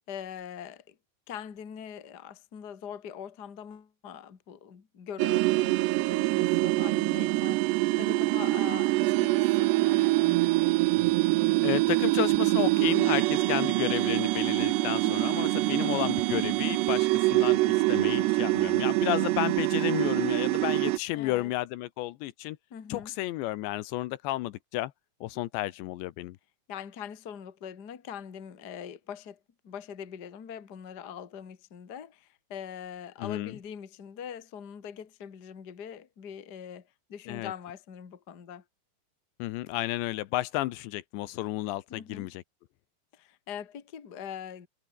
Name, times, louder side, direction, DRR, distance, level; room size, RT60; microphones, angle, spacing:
voice 1, 0.1-1.0 1.3-10.4 15.0-15.5 21.1-21.5 22.7-23.1 26.7-38.6 41.9-42.3 43.1-44.7, left 8 dB, 40° left, 1.5 m, -43 dB
sound 1, 5.2-21.0, right 20 dB, 85° right, 2.6 m, -25 dB
voice 2, 11.6-22.6 22.9-24.9 25.2-26.4 33.2-33.6 37.3-37.5 39.4-42.4, left 17 dB, 80° left, 3.1 m, -32 dB
omnidirectional pair, 5.1 m